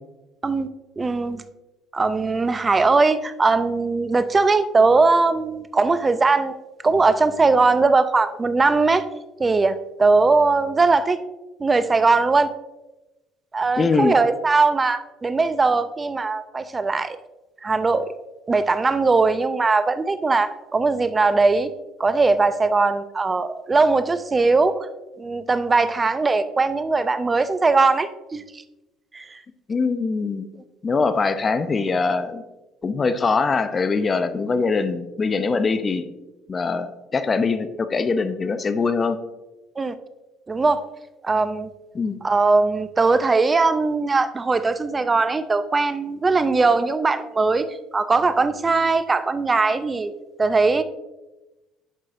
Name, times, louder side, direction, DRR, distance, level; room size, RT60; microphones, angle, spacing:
voice 1, 1.0-1.4 1.9-9.0 9.4-11.2 11.6-12.5 13.5-17.2 17.6-18.1 18.5-21.7 22.0-24.8 25.2-28.6 29.1-29.4 39.8-39.9 40.5-40.8 41.2-41.7 42.2-47.7 47.9-50.1 50.4-50.8, right 3 dB, 25° right, 12 dB, 0.5 m, -20 dB
voice 2, 13.8-14.2 29.7-30.4 30.8-32.4 32.8-36.0 36.5-39.2 41.9-42.2, left 4 dB, 35° left, 11 dB, 0.6 m, -22 dB
9.8 x 6.5 x 2.6 m, 1.0 s
hypercardioid pair, 65°, 0 cm